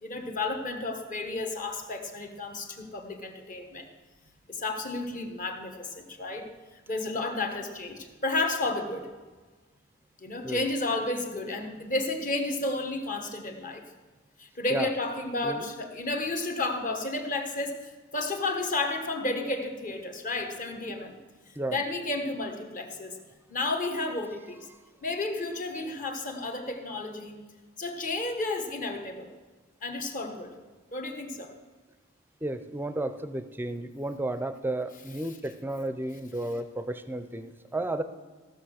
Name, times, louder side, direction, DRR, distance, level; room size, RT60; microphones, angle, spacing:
voice 1, 0.0-3.9 4.5-6.5 6.9-9.1 10.2-13.8 14.4-21.2 21.7-23.2 23.5-24.7 25.0-27.4 27.8-29.3 29.8-30.5 30.9-31.5, left 2 dB, 40° left, 4 dB, 1.3 m, -32 dB
voice 2, 32.4-38.0, right 1 dB, 10° right, 11 dB, 0.5 m, -33 dB
15.0 x 6.5 x 6.4 m, 1.4 s
head